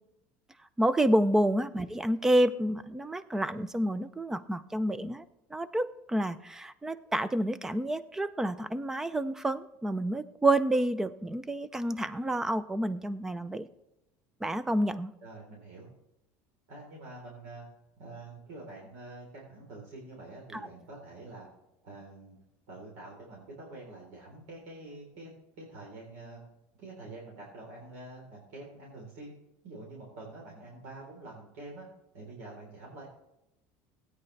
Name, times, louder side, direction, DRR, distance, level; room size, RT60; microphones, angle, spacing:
voice 1, 0.8-5.2 5.5-13.7 14.4-15.1, right 1 dB, 5° right, 15 dB, 0.4 m, -29 dB
voice 2, 15.2-15.9 16.7-17.7 18.0-21.5 21.8-22.4 22.7-26.4 26.7-29.3 29.6-31.9 32.1-33.1, right 2 dB, 85° right, -3 dB, 3.8 m, -46 dB
16.5 x 9.5 x 3.3 m, 0.86 s
cardioid pair, 165°, 7 cm